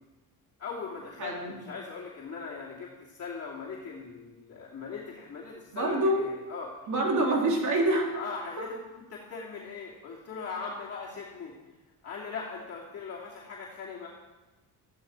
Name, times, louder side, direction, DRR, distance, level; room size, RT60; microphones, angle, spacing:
voice 1, 0.6-6.7 8.1-8.8 9.1-11.5 12.0-14.1, left 5 dB, 40° left, -5 dB, 2.6 m, -40 dB
voice 2, 1.2-1.6 5.7-6.2 6.9-8.1 8.6-8.7, right 1 dB, 50° right, -1 dB, 3.5 m, -26 dB
14.0 x 11.5 x 4.6 m, 1.1 s
cardioid pair, 105°, 37 cm